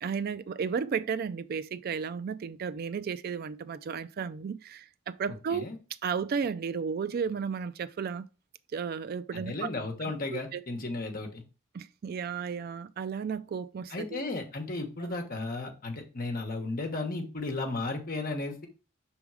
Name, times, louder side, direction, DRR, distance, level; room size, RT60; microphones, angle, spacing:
voice 1, 0.0-5.7 6.0-8.3 8.7-9.7 10.1-10.6 11.7-14.2 15.0-15.1, right 6 dB, 50° right, 0.3 m, -33 dB
voice 2, 9.3-11.4 13.9-18.7, left 2 dB, 45° left, 1.2 m, -34 dB
6.1 x 3.5 x 4.8 m
head